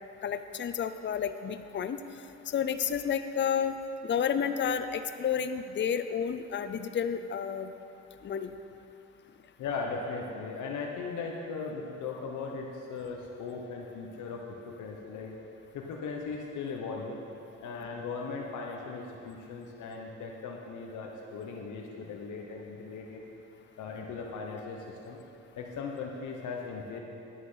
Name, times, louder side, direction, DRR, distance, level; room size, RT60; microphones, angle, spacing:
voice 1, 0.2-2.0 2.5-3.8 4.0-7.7 8.2-8.5, left 7 dB, 40° left, 10 dB, 0.6 m, -31 dB
voice 2, 9.6-15.4 15.7-17.2 17.6-23.2 23.8-25.2 25.6-27.0, left 4 dB, 80° left, -1 dB, 1.2 m, -38 dB
10.0 x 9.4 x 5.7 m, 2.8 s
cardioid pair, 90°, 30 cm